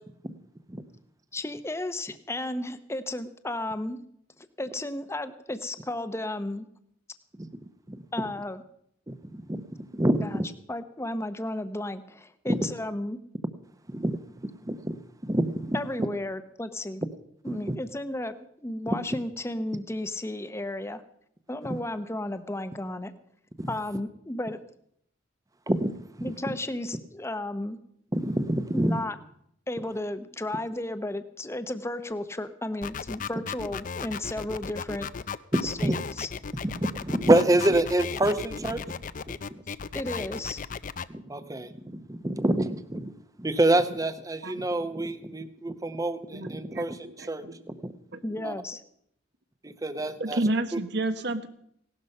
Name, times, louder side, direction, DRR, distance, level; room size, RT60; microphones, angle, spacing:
voice 1, 1.3-4.0 4.6-6.7 8.1-8.6 10.2-10.4 10.7-13.2 15.7-17.0 17.4-21.0 21.5-23.1 23.7-24.6 26.2-27.8 28.7-29.2 29.7-35.1 35.6-36.3 39.9-40.6 48.2-48.8, left 1 dB, 15° left, 11 dB, 0.8 m, -33 dB
voice 2, 7.9-8.3 9.1-10.5 12.5-12.6 13.9-14.2 14.6-15.8 17.7-17.8 23.6-23.7 25.7-25.9 26.2-26.3 28.1-29.0 35.5-35.9 36.8-38.8 41.1-47.9 48.4-48.5 49.6-50.4 50.7-50.8, right 1 dB, 20° right, 12 dB, 0.8 m, -27 dB
sound 1, 32.8-41.1, left 6 dB, 40° left, 0.5 m, -35 dB
voice 3, 46.3-46.8 47.2-47.5 48.1-48.5 50.2-51.5, right 2 dB, 60° right, 10 dB, 1.2 m, -30 dB
17.0 x 12.0 x 5.4 m, 0.70 s
head